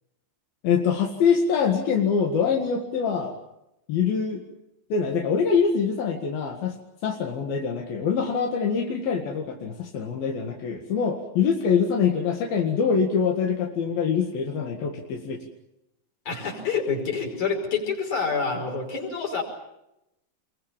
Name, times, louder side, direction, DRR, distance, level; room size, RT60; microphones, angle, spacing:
voice 1, 0.6-3.4 3.9-4.4 4.9-15.5, left 6 dB, 85° left, 1 dB, 3.8 m, -24 dB
voice 2, 16.3-19.4, left 5 dB, 55° left, 2 dB, 6.6 m, -27 dB
27.0 x 22.5 x 7.4 m, 0.85 s
omnidirectional pair, 4.1 m